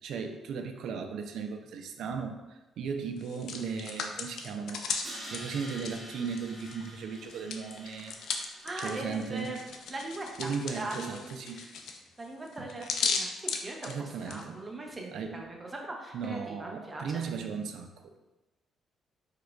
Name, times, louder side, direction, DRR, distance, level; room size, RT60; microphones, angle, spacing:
voice 1, 0.0-4.8 5.3-8.2 8.8-9.6 10.4-11.6 13.8-14.6 15.1-15.5 16.1-17.9, right 5 dB, 75° right, 6 dB, 0.3 m, -36 dB
Hands, 3.2-6.9 7.2-14.4, left 5 dB, 75° left, 0.3 m, -36 dB
Crash cymbal, 5.0-10.1, right 1 dB, 45° right, 0.9 m, -48 dB
voice 2, 8.6-9.6 9.9-11.2 11.5-11.7 12.2-17.2, right 2 dB, 25° right, 0 dB, 0.7 m, -40 dB
4.6 x 2.2 x 2.3 m, 1.1 s
cardioid pair, 90°, 0 cm